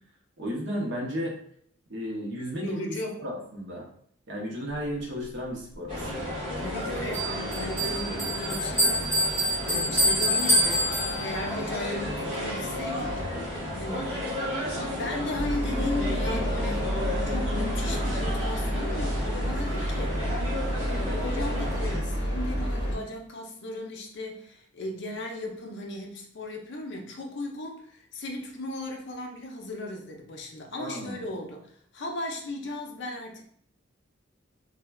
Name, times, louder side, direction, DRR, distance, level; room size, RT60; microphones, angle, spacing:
voice 1, 0.4-1.3 1.9-3.9 4.3-6.4 30.7-31.2, equal, 55° right, -2 dB, 0.7 m, -34 dB
voice 2, 2.6-3.2 6.6-9.3 9.6-20.5 20.8-33.4, left 1 dB, 55° left, 2 dB, 0.5 m, -36 dB
sound 1, 5.9-22.0, left 1 dB, 25° right, 1.0 m, -33 dB
Bell, 7.1-11.6, equal, 10° left, 0.9 m, -26 dB
sound 2, 15.3-23.0, equal, 40° left, 1.5 m, -29 dB
3.1 x 2.2 x 2.2 m, 0.62 s
head